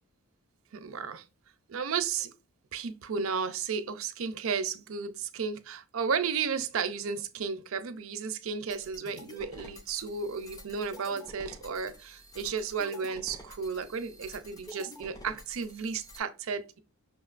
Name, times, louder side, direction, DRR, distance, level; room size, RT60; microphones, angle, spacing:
voice 1, 0.7-1.2 1.7-2.3 2.7-16.8, right 6 dB, 65° right, 0.5 m, -33 dB
sound 1, 8.7-16.2, equal, 15° left, 0.5 m, -49 dB
5.9 x 2.9 x 2.4 m
head